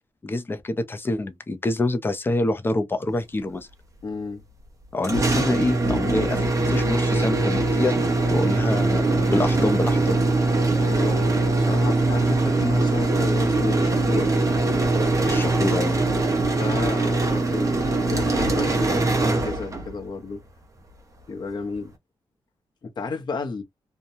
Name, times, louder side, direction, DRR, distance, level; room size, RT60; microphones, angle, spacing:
voice 1, 0.2-3.7 4.9-7.9 8.3-10.2 15.2-16.0, left 2 dB, 25° left, 0.6 m, -26 dB
voice 2, 4.0-4.4 8.4-8.6 10.8-14.3 16.6-20.4 21.3-21.9 22.8-23.6, left 4 dB, 50° left, 0.8 m, -32 dB
sound 1, 5.0-20.0, right 2 dB, 35° right, 0.9 m, -22 dB
2.8 x 2.2 x 2.7 m
wide cardioid pair, 135°, 10 cm